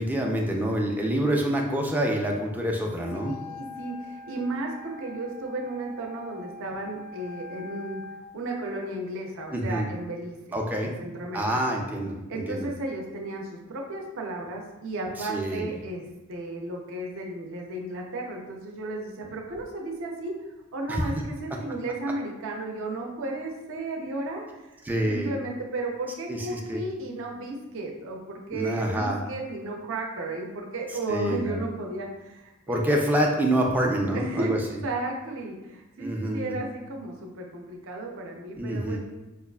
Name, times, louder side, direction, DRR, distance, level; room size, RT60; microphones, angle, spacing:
voice 1, 0.0-3.4 9.5-9.9 10.5-10.9 11.3-12.7 15.2-15.7 20.9-21.0 24.8-25.3 26.3-26.8 28.5-29.2 31.1-31.6 32.7-34.6 36.0-36.6 38.6-39.0, right 1 dB, 10° right, 0 dB, 0.3 m, -27 dB
Wind instrument woodwind instrument, 3.0-8.3, left 2 dB, 85° left, 0.3 m, -43 dB
voice 2, 3.1-11.5 12.3-24.8 25.1-32.9 34.1-39.0, right 2 dB, 60° right, 0 dB, 0.5 m, -34 dB
4.8 x 2.3 x 2.2 m, 1.0 s
head